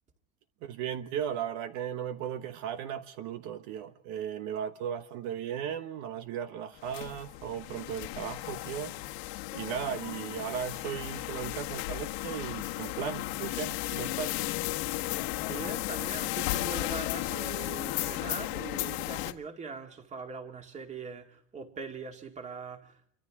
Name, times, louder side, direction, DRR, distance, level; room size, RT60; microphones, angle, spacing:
voice 1, 0.6-9.2 9.5-14.4, right 9 dB, 55° right, 1.3 m, -36 dB
sound 1, 6.8-19.3, left 19 dB, 70° left, 1.7 m, -34 dB
voice 2, 15.4-23.1, right 4 dB, 20° right, 2.3 m, -42 dB
29.0 x 24.5 x 3.7 m
supercardioid pair, 155°, 34 cm